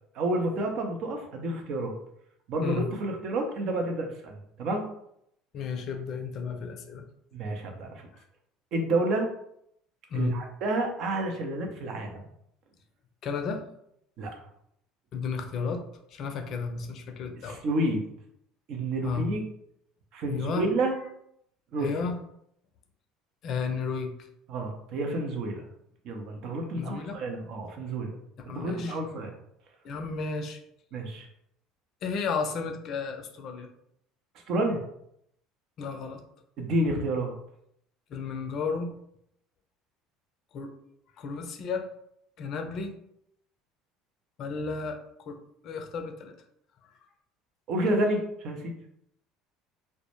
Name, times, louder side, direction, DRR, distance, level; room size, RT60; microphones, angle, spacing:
voice 1, 0.1-2.0 2.5-4.8 7.3-8.1 8.7-9.3 10.1-12.2 14.2-14.3 17.5-18.0 18.7-19.4 20.1-20.9 21.7-21.9 24.5-25.6 26.0-28.2 28.5-29.3 30.9-31.3 34.5-34.8 36.6-37.3 47.7-48.7, right 1 dB, 60° right, 3 dB, 0.5 m, -29 dB
voice 2, 5.5-7.0 10.1-10.4 13.2-13.6 15.1-15.8 16.1-17.6 19.0-19.3 20.3-20.7 21.8-22.1 23.4-24.1 26.7-27.2 28.4-29.0 29.8-30.6 32.0-33.7 35.8-36.2 36.8-37.0 38.1-38.9 40.5-40.7 41.2-41.9 42.4-42.9 44.4-45.0 45.3-45.4 45.6-46.3, left 5 dB, 55° left, 5 dB, 0.4 m, -33 dB
2.1 x 2.0 x 2.9 m, 0.74 s
hypercardioid pair, 70°, 0 cm